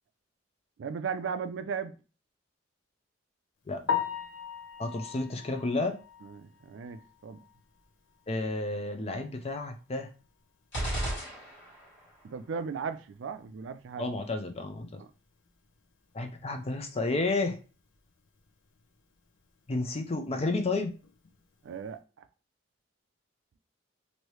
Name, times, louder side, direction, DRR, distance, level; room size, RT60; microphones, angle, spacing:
voice 1, 0.8-1.9 6.2-7.4 12.2-14.1 15.0-15.1 21.6-22.0, right 6 dB, 75° right, 0.3 m, -36 dB
Piano, 3.9-7.8 8.2-8.3 8.8-8.9 9.3-9.4 12.4-12.5 21.0-21.3, left 8 dB, 85° left, 0.6 m, -37 dB
voice 2, 4.8-6.0 8.3-10.1 14.0-15.0 16.1-17.6 19.7-20.9, left 2 dB, 35° left, 0.5 m, -31 dB
sound 1, 10.7-12.0, right 1 dB, 65° left, 1.6 m, -34 dB
3.0 x 2.7 x 3.1 m
head